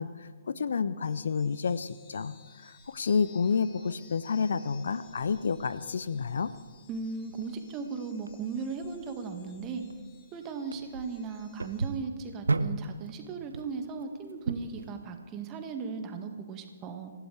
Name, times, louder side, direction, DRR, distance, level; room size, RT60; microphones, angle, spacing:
voice 1, 0.0-2.3 2.6-6.5, left 5 dB, 60° left, 15 dB, 0.6 m, -30 dB
sound 1, 1.0-11.9, left 6 dB, 25° left, 2.4 m, -59 dB
sound 2, 2.8-14.9, right 3 dB, 70° right, 0.8 m, -39 dB
voice 2, 6.9-9.9 10.3-17.1, right 5 dB, 25° right, 5 dB, 1.9 m, -37 dB
25.5 x 16.0 x 3.4 m, 1.5 s
figure-of-eight pair, 125°, 0 cm